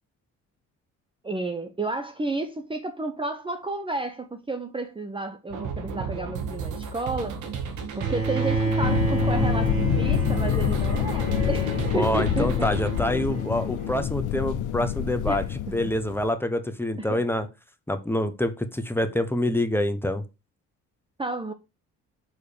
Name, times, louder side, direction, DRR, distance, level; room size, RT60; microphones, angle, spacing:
voice 1, 1.2-7.4 7.9-12.7 15.3-15.8 17.0-17.2 21.2-21.5, right 2 dB, 15° right, 0.9 m, -31 dB
sound 1, 5.5-13.0, right 6 dB, 80° right, 1.7 m, -33 dB
Bowed string instrument, 8.0-14.1, right 3 dB, 45° right, 5.1 m, -30 dB
sound 2, 8.8-16.3, left 11 dB, 80° left, 0.6 m, -27 dB
voice 2, 11.9-15.4 15.7-17.5 17.9-20.2, left 1 dB, 5° left, 1.2 m, -26 dB
6.5 x 4.7 x 5.2 m
cardioid pair, 90°, 30 cm